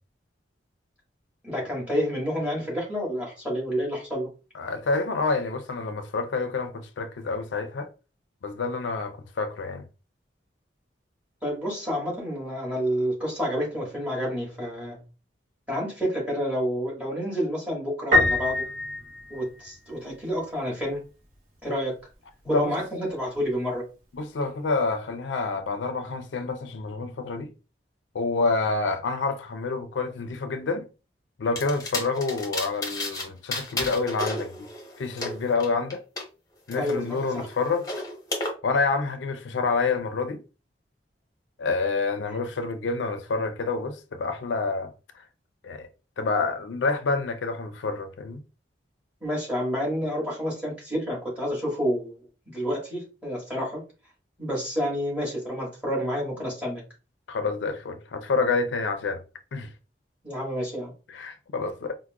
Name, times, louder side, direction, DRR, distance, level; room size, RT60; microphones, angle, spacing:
voice 1, 1.4-4.3 11.4-15.0 15.7-18.6 19.3-21.0 21.6-21.9 22.4-23.8 36.7-37.5 49.2-52.2 52.5-53.8 54.4-56.8 60.2-60.9, equal, 10° right, 1.6 m, -29 dB
voice 2, 4.5-7.9 8.4-9.8 22.5-22.7 24.1-27.5 28.1-30.9 31.4-34.7 35.0-36.0 36.7-37.9 38.6-40.4 41.6-45.2 45.6-45.9 46.2-48.4 57.3-59.2 59.5-59.7 61.1-61.9, left 3 dB, 85° left, 0.5 m, -28 dB
Piano, 18.1-19.9, left 2 dB, 50° right, 0.8 m, -24 dB
sound 1, 31.6-33.2 33.5-36.2 36.7-38.5, left 2 dB, 20° left, 0.9 m, -33 dB
4.6 x 2.1 x 2.3 m
head